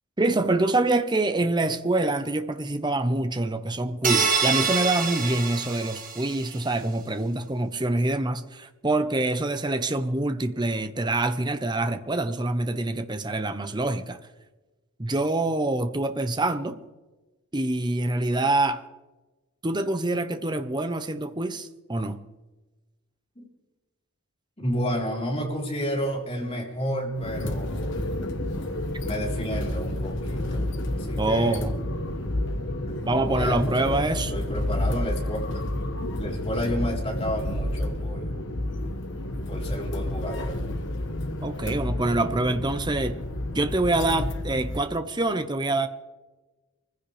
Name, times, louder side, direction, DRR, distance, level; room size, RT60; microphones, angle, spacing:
voice 1, 0.2-14.2 15.0-16.8 17.5-18.8 19.6-22.2 31.2-31.7 33.0-34.3 41.4-43.2 43.5-45.9, right 2 dB, 20° right, 9 dB, 0.8 m, -25 dB
sound 1, 4.0-6.5, right 5 dB, 40° right, 1.8 m, -26 dB
voice 2, 24.6-27.9 28.3-28.4 29.0-30.7 31.0-31.6 33.2-33.7 34.1-35.4 36.2-38.4 39.5-40.6, equal, 30° left, -1 dB, 3.8 m, -31 dB
sound 2, 27.1-44.8, left 1 dB, 55° left, 1.4 m, -30 dB
24.0 x 15.5 x 3.4 m, 1.1 s
head